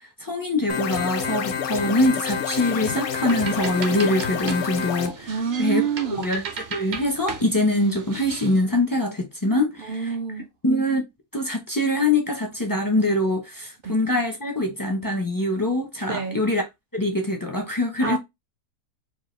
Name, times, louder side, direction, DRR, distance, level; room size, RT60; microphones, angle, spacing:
voice 1, 0.2-5.3 5.6-5.8 6.1-6.4 6.7-10.1 10.6-11.1 11.3-16.6 16.9-18.2, left 1 dB, 25° left, 0.4 m, -23 dB
sound 1, 0.7-5.1, left 7 dB, 65° left, 0.7 m, -28 dB
sound 2, 2.9-8.6, right 5 dB, 55° right, 0.8 m, -37 dB
voice 2, 5.3-6.3 9.8-10.5 13.8-13.9 16.1-16.4 18.0-18.2, right 7 dB, 75° right, 0.5 m, -27 dB
4.7 x 2.4 x 3.2 m
omnidirectional pair, 1.7 m